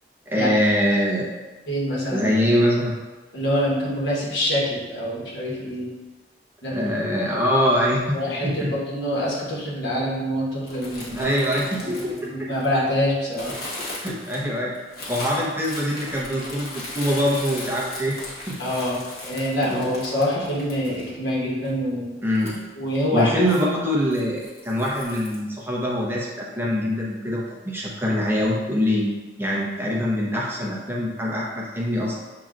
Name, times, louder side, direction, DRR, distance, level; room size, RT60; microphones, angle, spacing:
voice 1, 0.3-1.3 2.1-2.9 6.7-8.2 8.4-8.7 11.1-12.3 14.0-14.7 15.1-18.2 18.5-18.6 19.7-19.9 22.2-22.6 23.1-29.1 29.4-32.2, equal, 15° right, -4 dB, 0.7 m, -23 dB
voice 2, 1.7-2.3 3.3-5.9 6.6-6.8 8.1-11.3 11.8-13.5 18.6-22.2 22.8-23.3, equal, 85° left, -5 dB, 1.3 m, -25 dB
sound 1, 10.7-12.8 13.3-21.3 21.6-21.7 22.3-22.6 23.1-23.7 24.1-25.4, left 1 dB, 55° left, 1.2 m, -37 dB
7.3 x 2.8 x 2.5 m, 1.2 s
head